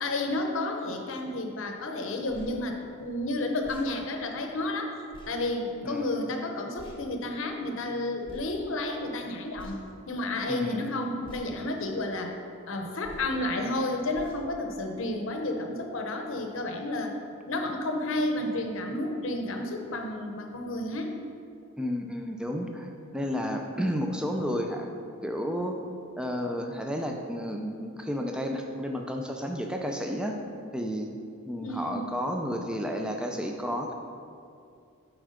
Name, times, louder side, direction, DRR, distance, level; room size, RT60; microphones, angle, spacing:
voice 1, 0.0-4.9 5.3-9.8 10.1-12.3 12.7-17.1 17.5-21.2 31.6-32.1, left 2 dB, 65° left, 3 dB, 0.8 m, -31 dB
sound 1, 2.3-2.5 3.6-3.9 5.1-5.3 6.8-7.0 8.2-8.5 9.5-10.0 11.2-11.5 13.0-13.3 14.1-14.4, left 1 dB, 25° left, 0.9 m, -47 dB
voice 2, 10.5-11.0 21.8-24.9 25.2-25.8 26.2-30.3 30.7-31.1 31.5-33.9, equal, 5° right, 2 dB, 0.5 m, -31 dB
7.7 x 4.7 x 5.1 m, 2.4 s
head